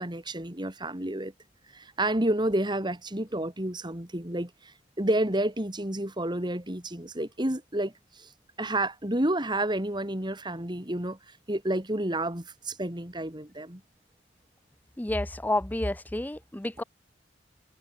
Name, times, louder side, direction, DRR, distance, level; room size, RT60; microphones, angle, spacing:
voice 1, 0.0-1.3 1.7-8.3 8.6-13.8, right 1 dB, 25° right, 3.4 m, -30 dB
voice 2, 15.0-16.8, left 1 dB, 10° left, 0.6 m, -30 dB
head